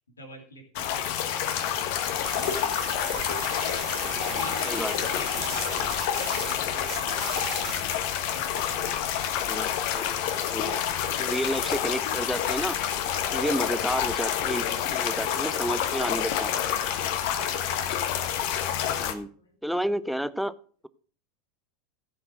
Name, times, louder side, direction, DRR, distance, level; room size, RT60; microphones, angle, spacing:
voice 1, 0.2-2.5 2.8-3.0 3.4-5.9 6.4-7.9 8.3-8.7 19.4-19.5, left 1 dB, 85° left, 3 dB, 2.6 m, -47 dB
sound 1, 0.8-19.1, left 9 dB, 55° left, 1.3 m, -28 dB
sound 2, 2.2-6.5 6.8-8.0, right 10 dB, 40° right, 1.9 m, -38 dB
voice 2, 4.1-5.1 7.8-8.0 9.4-10.8 11.2-12.8 13.3-16.7 19.0-19.3 19.6-20.6, equal, ahead, 14 dB, 0.6 m, -31 dB
15.0 x 5.2 x 6.3 m, 0.43 s
figure-of-eight pair, 85°, 0 cm